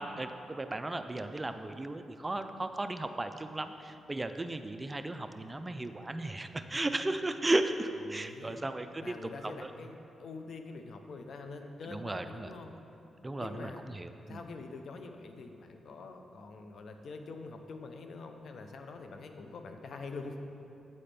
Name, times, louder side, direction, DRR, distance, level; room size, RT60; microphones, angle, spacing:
voice 1, 0.0-9.1 9.4-9.5 11.9-12.5 13.2-14.4, right 2 dB, 20° right, 8 dB, 0.3 m, -35 dB
voice 2, 8.1-8.6 9.0-12.8 13.4-13.8 14.3-20.4, left 3 dB, 70° left, 5 dB, 0.5 m, -45 dB
8.5 x 4.1 x 3.3 m, 2.8 s
cardioid pair, 70°, 0 cm